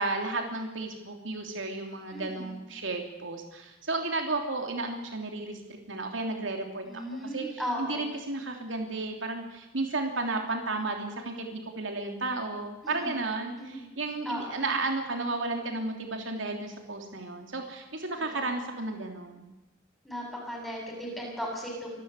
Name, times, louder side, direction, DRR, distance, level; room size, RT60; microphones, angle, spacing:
voice 1, 0.0-5.6 5.9-6.8 7.2-19.5, right 3 dB, 80° right, 3 dB, 3.1 m, -33 dB
voice 2, 2.1-2.5 6.8-8.1 12.8-13.2 13.6-13.8 14.3-14.6 20.0-21.9, equal, ahead, -1 dB, 7.5 m, -36 dB
25.5 x 13.0 x 8.3 m, 1.1 s
head